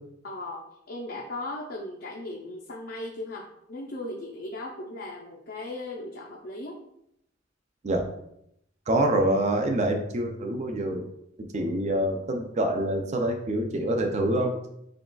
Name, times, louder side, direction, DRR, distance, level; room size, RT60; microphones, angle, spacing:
voice 1, 0.2-6.8 11.6-11.8, left 2 dB, 60° left, -2 dB, 0.5 m, -37 dB
voice 2, 8.9-11.1 11.4-14.5, right 1 dB, 40° right, 4 dB, 0.4 m, -26 dB
6.1 x 2.3 x 2.2 m, 0.76 s
head